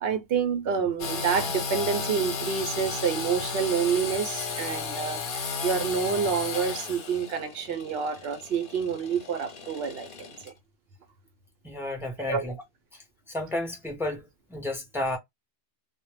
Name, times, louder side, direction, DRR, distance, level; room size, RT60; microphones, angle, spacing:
voice 1, 0.0-10.5 12.3-12.5, right 6 dB, 65° right, 0.8 m, -28 dB
Engine / Sawing, 1.0-10.5, left 5 dB, 55° left, 0.8 m, -34 dB
voice 2, 11.6-12.5 13.3-14.2 14.5-15.2, left 2 dB, 5° right, 0.5 m, -31 dB
2.1 x 2.1 x 3.1 m
omnidirectional pair, 1.2 m